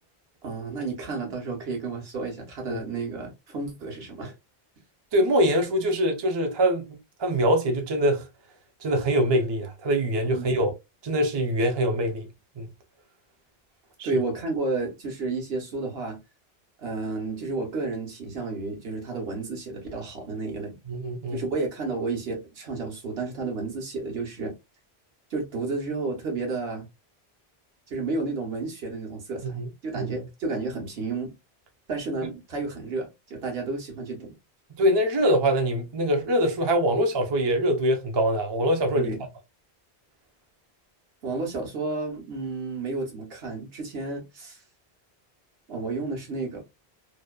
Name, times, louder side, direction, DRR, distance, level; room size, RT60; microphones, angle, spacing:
voice 1, 0.4-4.3 10.3-10.6 14.0-16.2 16.8-20.8 21.3-24.6 25.3-26.9 27.9-31.3 31.9-34.3 39.0-39.2 41.2-44.6 45.7-46.6, right 3 dB, 70° right, 1.1 m, -31 dB
voice 2, 5.1-6.9 7.2-8.3 8.8-10.7 11.0-12.3 12.6-12.7 14.0-14.1 20.9-21.4 29.4-29.7 29.9-30.1 34.8-39.1, equal, 40° right, 0.4 m, -23 dB
2.7 x 2.1 x 2.2 m
omnidirectional pair, 1.1 m